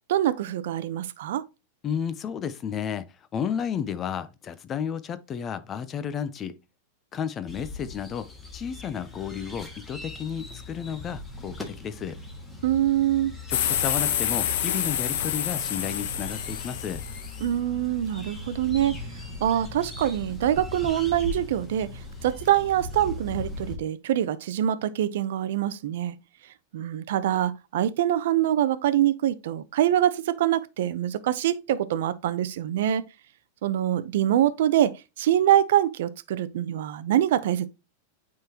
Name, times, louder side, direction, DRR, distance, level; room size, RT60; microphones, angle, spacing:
voice 1, 0.1-1.4 12.6-13.3 17.4-19.0 19.4-21.9 22.2-26.1 26.7-33.0 33.6-37.7, right 11 dB, 70° right, 0.6 m, -24 dB
voice 2, 1.8-3.1 3.3-6.6 7.1-8.3 8.5-12.2 13.5-17.0, left 8 dB, 25° left, 0.5 m, -32 dB
sound 1, 7.5-23.8, left 2 dB, 10° left, 1.6 m, -39 dB
sound 2, 13.5-17.4, left 10 dB, 70° left, 0.9 m, -28 dB
9.0 x 3.8 x 2.9 m
supercardioid pair, 135°, 0 cm